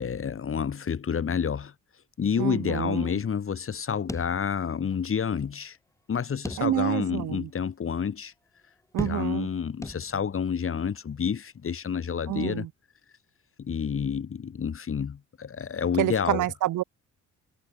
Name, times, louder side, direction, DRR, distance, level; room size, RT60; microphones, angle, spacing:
voice 1, 0.0-1.7 2.2-5.8 6.1-8.3 9.0-12.7 13.6-16.5, left 7 dB, 45° left, 3.4 m, -29 dB
voice 2, 2.4-3.1 6.6-7.5 8.9-9.5 12.3-12.7 16.0-16.8, right 15 dB, 80° right, 2.0 m, -28 dB
sound 1, 4.1-5.0 5.3-5.4 6.4-7.1 7.6-7.7 9.0-9.5 9.8-10.5, left 2 dB, 10° left, 1.9 m, -37 dB
cardioid pair, 90°, 30 cm